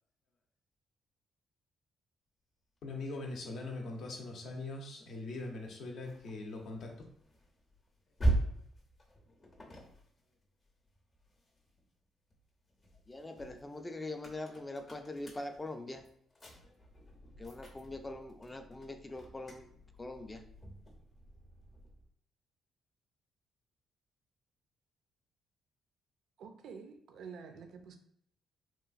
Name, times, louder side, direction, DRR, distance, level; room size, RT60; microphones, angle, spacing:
voice 1, 2.8-7.0 8.4-8.6, left 2 dB, 70° left, 0.6 m, -42 dB
sound 1, 5.3-11.9 12.3-22.1, right 2 dB, 35° left, 0.7 m, -41 dB
voice 2, 13.1-16.1 17.4-19.7 20.0-20.5, left 2 dB, 20° left, 0.3 m, -43 dB
voice 3, 26.4-28.0, right 5 dB, 75° right, 0.4 m, -48 dB
2.9 x 2.3 x 2.5 m
cardioid pair, 90°, 0 cm